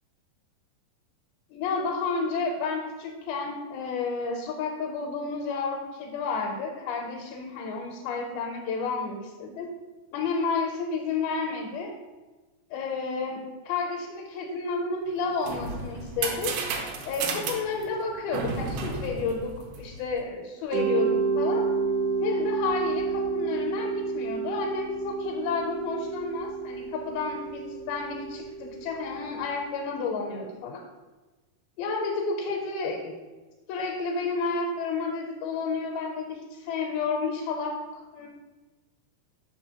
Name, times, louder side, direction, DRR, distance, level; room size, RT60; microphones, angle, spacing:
voice 1, 1.5-9.7 10.1-11.9 12.7-16.5 17.1-19.5 19.8-21.6 22.2-30.8 31.8-33.1 33.7-38.3, left 4 dB, 90° left, 0 dB, 2.5 m, -31 dB
sound 1, 15.1-20.2, right 4 dB, 90° right, 2.4 m, -33 dB
Mallet percussion, 20.7-29.5, right 5 dB, 70° right, 1.8 m, -30 dB
5.9 x 5.7 x 2.8 m, 1.2 s
omnidirectional pair, 4.2 m